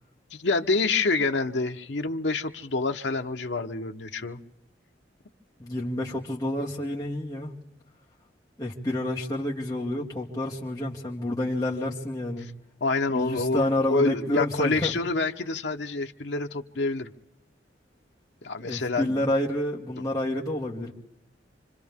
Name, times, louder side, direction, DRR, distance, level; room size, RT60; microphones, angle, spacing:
voice 1, 0.3-4.4 12.8-17.1 18.4-19.2, left 3 dB, 75° left, 5 dB, 1.0 m, -27 dB
voice 2, 5.6-7.5 8.6-12.5 13.1-14.9 18.6-20.9, left 1 dB, 20° left, -6 dB, 2.3 m, -29 dB
28.5 x 25.5 x 3.6 m, 0.83 s
head